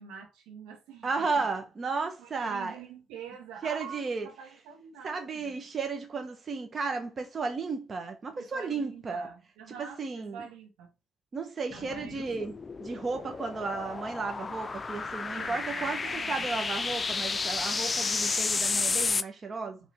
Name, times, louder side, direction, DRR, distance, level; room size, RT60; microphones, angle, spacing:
voice 1, 0.0-1.5 2.2-5.6 8.3-10.9 11.7-12.5 15.3-16.5, right 6 dB, 90° right, 2.2 m, -46 dB
voice 2, 1.0-2.8 3.6-4.3 5.0-9.3 9.8-10.5 11.3-12.5 12.8-19.8, right 4 dB, 45° right, 1.2 m, -34 dB
sound 1, 11.7-19.2, left 4 dB, 35° left, 0.6 m, -32 dB
5.2 x 3.6 x 5.5 m
supercardioid pair, 70°, 0 cm